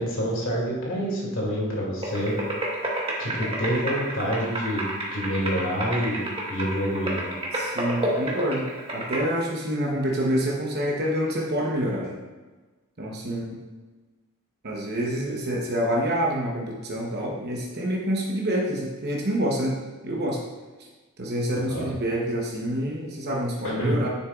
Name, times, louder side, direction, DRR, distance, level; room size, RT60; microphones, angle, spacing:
voice 1, 0.0-2.4 3.2-7.2 21.7-21.9 23.6-24.0, equal, 60° left, -3 dB, 2.4 m, -27 dB
sound 1, 2.0-9.2, right 1 dB, 25° right, 1.4 m, -30 dB
voice 2, 7.5-8.7 8.9-12.2 13.0-13.5 14.6-19.8 20.0-20.4 21.2-24.1, equal, 50° right, -2 dB, 1.0 m, -27 dB
9.8 x 6.8 x 2.4 m, 1.3 s
head